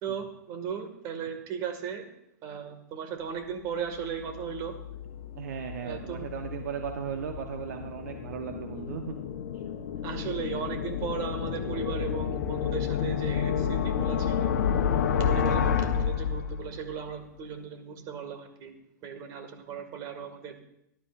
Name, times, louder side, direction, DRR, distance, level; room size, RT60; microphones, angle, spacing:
voice 1, 0.0-2.0 2.4-4.8 5.8-6.3 10.0-14.6 15.1-18.7 19.0-20.6, right 7 dB, 40° right, 5 dB, 2.1 m, -36 dB
sound 1, 3.9-16.9, left 8 dB, 65° left, 1.1 m, -30 dB
voice 2, 5.4-9.1 9.5-10.1 15.2-15.7, right 7 dB, 70° right, 5 dB, 1.1 m, -37 dB
17.5 x 11.5 x 2.6 m, 0.76 s
hypercardioid pair, 115°, 10 cm